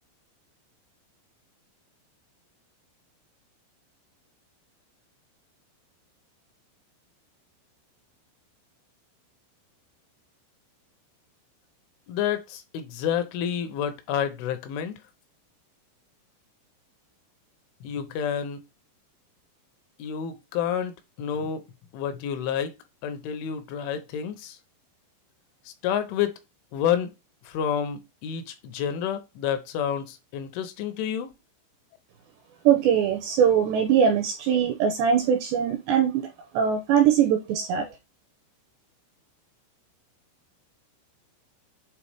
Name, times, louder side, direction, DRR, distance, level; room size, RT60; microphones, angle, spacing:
voice 1, 12.1-14.9 17.8-18.6 20.0-20.9 21.2-21.6 21.9-22.7 23.0-24.6 25.8-26.3 26.7-27.1 27.5-31.3, left 8 dB, 80° left, 3.3 m, -29 dB
voice 2, 32.7-36.3 36.5-37.9, right 8 dB, 80° right, 2.5 m, -21 dB
8.4 x 3.4 x 3.5 m
omnidirectional pair, 5.8 m